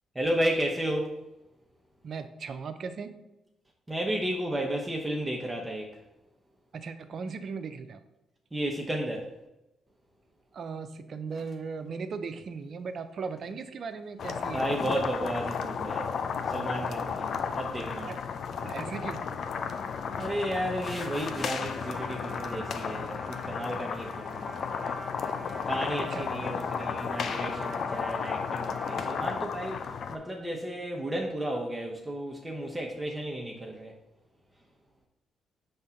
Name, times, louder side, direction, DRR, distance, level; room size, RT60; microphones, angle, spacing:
voice 1, 0.1-1.1 3.9-5.9 8.5-9.3 14.5-16.2 16.5-18.1 20.2-24.5 25.7-33.9, right 1 dB, 15° right, 0 dB, 0.9 m, -33 dB
voice 2, 2.0-3.1 6.7-8.0 10.5-14.7 17.8-18.2 18.6-19.2 26.1-26.3, right 5 dB, 60° right, 10 dB, 0.5 m, -37 dB
sound 1, 11.3-11.6 12.2-12.3 12.8-14.0 14.3-15.9 16.3-16.8 17.1-17.2 17.5-17.8 18.2-18.6 19.1-19.8 20.2-21.5, left 3 dB, 40° left, 1.2 m, -47 dB
sound 2, 14.2-30.2, left 6 dB, 65° left, 0.5 m, -33 dB
Trumpet, 20.9-29.4, equal, ahead, 1.3 m, -45 dB
5.4 x 3.5 x 5.7 m, 0.93 s
supercardioid pair, 60°, 0 cm